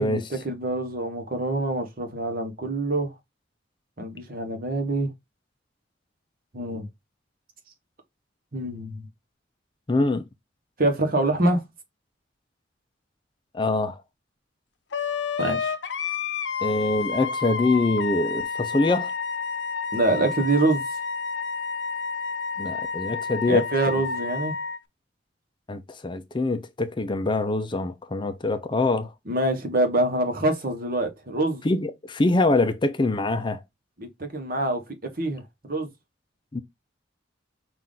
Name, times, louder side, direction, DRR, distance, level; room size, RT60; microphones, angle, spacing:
voice 1, 0.0-3.1 4.0-5.1 6.5-6.9 8.5-9.1 10.8-11.6 15.4-15.7 19.9-20.8 23.5-24.5 29.3-31.6 34.0-35.9, right 2 dB, 50° right, 1.2 m, -25 dB
voice 2, 9.9-10.2 13.5-14.0 16.6-19.1 22.6-23.7 25.7-29.1 31.6-33.6 36.5-36.6, left 2 dB, 25° left, 0.4 m, -24 dB
Wind instrument woodwind instrument, 14.9-24.8, left 5 dB, 65° left, 0.6 m, -30 dB
5.6 x 2.5 x 3.7 m
head